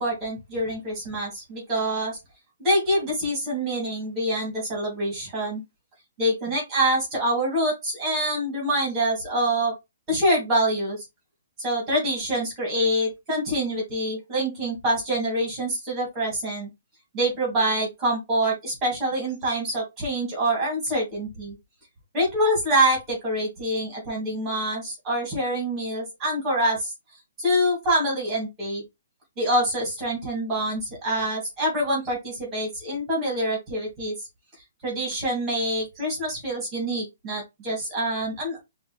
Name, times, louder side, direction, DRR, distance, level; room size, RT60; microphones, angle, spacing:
voice 1, 0.0-2.2 2.6-5.6 6.2-9.7 10.1-11.0 11.6-16.7 17.1-21.6 22.1-26.9 27.4-28.8 29.4-34.1 34.8-38.6, right 1 dB, 10° right, -1 dB, 2.5 m, -25 dB
5.7 x 2.8 x 3.2 m, 0.21 s
hypercardioid pair, 175°, 0 cm